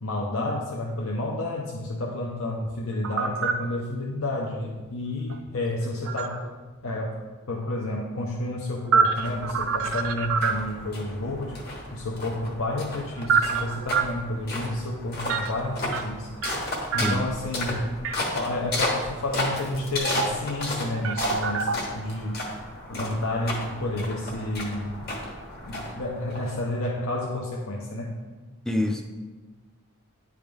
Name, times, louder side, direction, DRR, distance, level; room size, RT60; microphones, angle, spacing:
voice 1, 0.0-6.5 6.8-7.2 7.5-11.6 11.9-16.3 16.9-17.8 18.3-22.4 22.9-25.1 25.6-28.2, left 1 dB, 70° left, -2 dB, 0.7 m, -30 dB
sound 1, 2.7-3.6 5.3-6.5 8.4-10.9 12.3-14.1 15.3-15.5 15.9-16.6 16.9-17.5 18.0-18.1 20.0-20.5 20.8-21.8, right 6 dB, 65° right, 0.4 m, -26 dB
sound 2, 9.2-26.9, left 1 dB, 45° left, 1.3 m, -34 dB
voice 2, 28.6-29.0, left 1 dB, 5° left, 4 dB, 0.5 m, -25 dB
10.5 x 3.6 x 3.5 m, 1.3 s
head